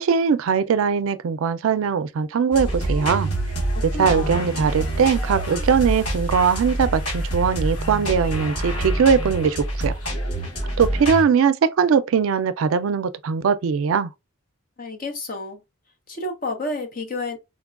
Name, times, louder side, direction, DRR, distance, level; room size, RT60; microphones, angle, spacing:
voice 1, 0.0-3.3 3.8-9.9 10.8-14.1, right 6 dB, 75° right, 0.4 m, -20 dB
sound 1, 2.5-11.2, right 1 dB, 80° left, 1.4 m, -26 dB
voice 2, 3.9-4.4 14.8-15.6 16.1-17.4, left 2 dB, 40° left, 0.8 m, -30 dB
4.0 x 2.2 x 2.3 m
head